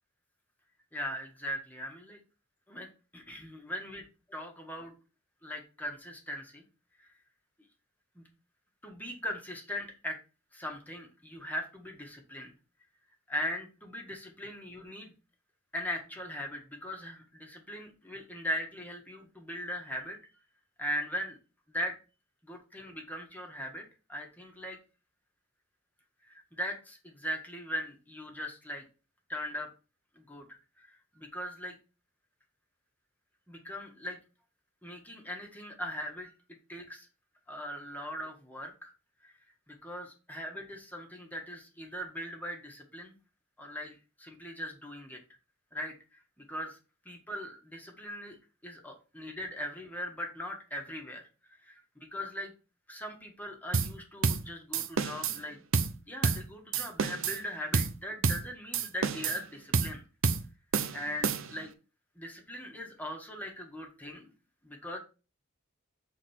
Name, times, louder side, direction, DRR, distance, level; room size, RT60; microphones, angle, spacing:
voice 1, 0.9-2.2 2.7-4.9 5.4-6.6 7.0-7.1 8.1-8.2 8.8-10.2 10.5-12.5 13.3-15.1 15.7-20.2 20.8-21.4 21.7-22.0 22.4-24.8 26.2-28.8 29.3-29.7 30.1-30.5 30.8-31.8 33.5-34.2 34.8-36.3 36.7-37.1 37.5-38.9 39.2-39.3 39.7-43.1 43.6-45.2 45.7-45.9 46.5-46.8 47.0-48.4 48.6-51.8 52.1-52.5 52.9-55.6 56.0-60.0 60.9-61.7 62.1-64.2 64.6-65.0, equal, 10° left, 2 dB, 1.6 m, -39 dB
sound 1, 53.7-54.0 54.2-54.5 54.7-55.4 55.7-56.0 56.2-56.5 56.7-57.4 57.7-58.0 58.2-58.5 58.7-59.4 59.7-60.0 60.2-60.5 60.7-61.6, right 5 dB, 65° right, 0.7 m, -29 dB
7.7 x 4.2 x 4.5 m, 0.31 s
head